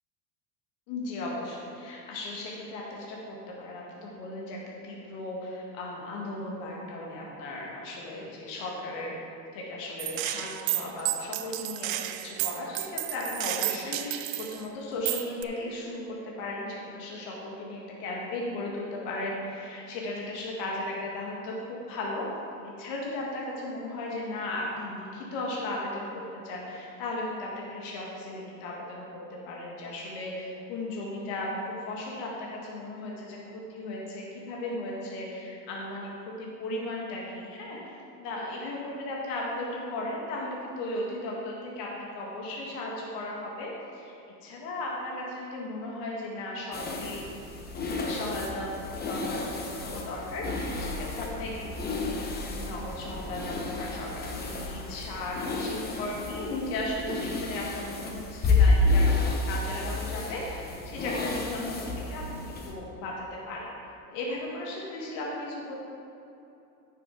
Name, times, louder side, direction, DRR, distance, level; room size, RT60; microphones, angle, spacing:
voice 1, 0.9-9.1 9.5-22.3 22.8-44.2 44.4-47.2 48.0-52.1 52.4-61.7 62.1-63.7 64.1-65.8, left 2 dB, 80° left, -3 dB, 1.6 m, -36 dB
Gunshot gunfire, 10.0-14.6 15.0-15.4, right 16 dB, 75° right, 0.5 m, -32 dB
sound 1, 46.7-62.7, left 3 dB, 25° left, 0.9 m, -30 dB
9.8 x 6.4 x 3.9 m, 2.8 s
cardioid pair, 140°, 37 cm